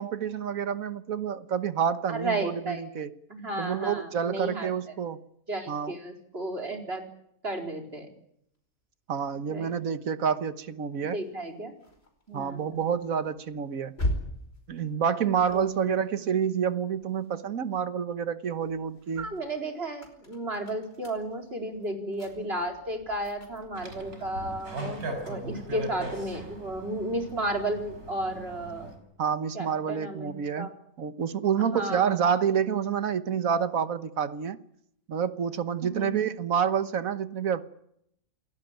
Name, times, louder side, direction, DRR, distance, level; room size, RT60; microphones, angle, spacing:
voice 1, 0.0-3.1 3.6-5.2 5.7-5.9 9.1-11.2 12.3-14.0 14.7-19.3 29.2-30.7 31.0-34.6 35.1-37.6, right 7 dB, 65° right, 1.6 m, -28 dB
voice 2, 2.1-2.8 3.3-4.7 5.5-7.0 7.4-8.1 9.5-9.7 11.1-11.7 12.3-12.8 15.5-16.0 19.2-25.0 25.3-28.9 29.5-30.7 31.6-32.2 35.8-36.1, right 1 dB, 40° right, 4.5 m, -33 dB
sound 1, 11.1-17.6 18.1-27.9, left 1 dB, 40° left, 5.2 m, -42 dB
sound 2, 23.8-29.0, right 1 dB, 85° right, 5.8 m, -39 dB
28.5 x 18.0 x 9.2 m
omnidirectional pair, 1.6 m